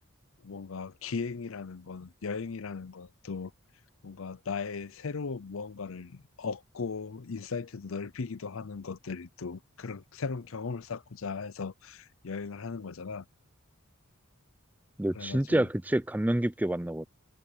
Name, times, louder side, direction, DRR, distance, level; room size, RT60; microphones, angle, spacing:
voice 1, 0.4-3.5 4.0-13.2 15.1-15.7, left 5 dB, 70° left, 0.7 m, -37 dB
voice 2, 15.0-17.1, right 1 dB, 10° right, 0.5 m, -28 dB
head